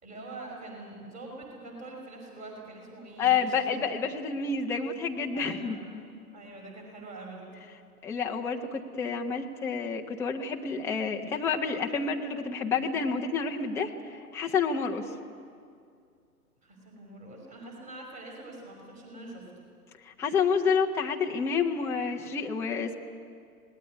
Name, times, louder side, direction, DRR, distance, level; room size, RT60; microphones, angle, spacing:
voice 1, 0.0-3.8 5.3-5.8 6.3-7.5 16.6-19.7, right 2 dB, 15° right, 1 dB, 5.6 m, -44 dB
voice 2, 3.2-6.0 8.0-15.0 20.0-22.9, left 5 dB, 5° left, 1 dB, 0.7 m, -29 dB
26.5 x 19.5 x 9.9 m, 2.3 s
figure-of-eight pair, 115°, 47 cm